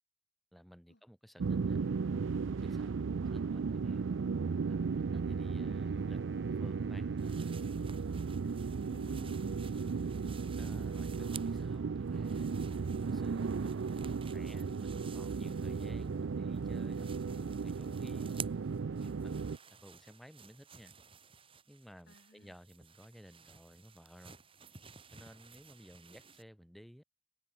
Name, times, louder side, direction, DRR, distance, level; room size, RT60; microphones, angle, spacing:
voice 1, 0.5-1.8 2.5-2.9 3.3-4.0 4.7-6.2 6.5-7.1 10.6-18.3 19.0-19.6 19.8-20.9 21.7-24.4 25.1-27.0, equal, ahead, 3.4 m, -56 dB
sound 1, 1.4-19.6, right 5 dB, 85° right, 0.5 m, -35 dB
Wind instrument woodwind instrument, 3.8-9.5, right 3 dB, 65° right, 4.0 m, -62 dB
sound 2, 7.2-11.8 12.1-16.3 16.5-26.4, right 7 dB, 30° right, 5.4 m, -53 dB
voice 2, 7.8-8.6 8.9-10.1 22.1-22.5, left 1 dB, 65° left, 5.4 m, -59 dB
head